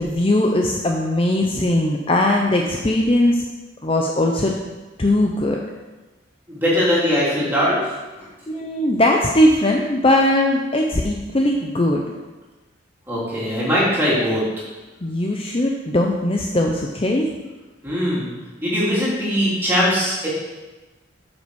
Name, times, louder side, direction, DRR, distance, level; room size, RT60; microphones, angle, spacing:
voice 1, 0.0-3.4 3.8-4.5 5.0-5.6 8.5-12.0 15.0-17.3, left 1 dB, 30° left, 1 dB, 0.6 m, -19 dB
voice 2, 6.5-8.2 13.1-14.4 17.8-18.3 18.6-20.3, equal, 10° right, -8 dB, 3.2 m, -21 dB
8.7 x 5.8 x 6.3 m, 1.2 s
head